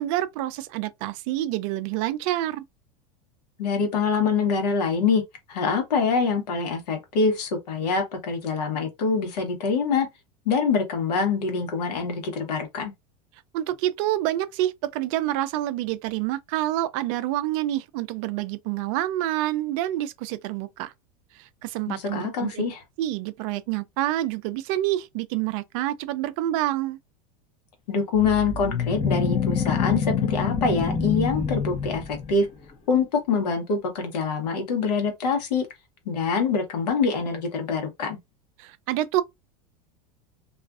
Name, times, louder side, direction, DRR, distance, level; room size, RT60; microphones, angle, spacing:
voice 1, 0.0-2.6 13.5-20.9 21.3-22.6 23.0-27.0 38.6-39.2, right 14 dB, 60° right, 0.4 m, -27 dB
voice 2, 3.6-5.2 5.5-10.1 10.5-12.9 21.9-22.8 27.9-32.5 32.9-35.7 36.1-38.2, left 5 dB, 85° left, 1.0 m, -25 dB
sound 1, 28.1-32.5, left 6 dB, 30° left, 0.6 m, -26 dB
2.4 x 2.3 x 2.4 m
supercardioid pair, 115°, 20 cm